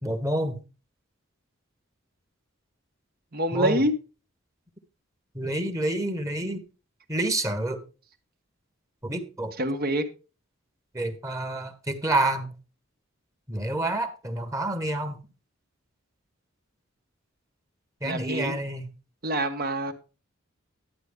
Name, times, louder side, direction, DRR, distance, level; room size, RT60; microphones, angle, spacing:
voice 1, 0.0-0.6 3.5-3.8 5.3-6.6 7.1-7.8 9.0-9.5 10.9-12.6 13.5-15.2 18.0-18.9, right 1 dB, 15° right, 8 dB, 1.4 m, -28 dB
voice 2, 3.3-3.9 9.6-10.0 18.0-18.5 19.2-19.9, right 1 dB, 50° right, 7 dB, 1.5 m, -26 dB
11.5 x 9.3 x 3.6 m, 0.33 s
head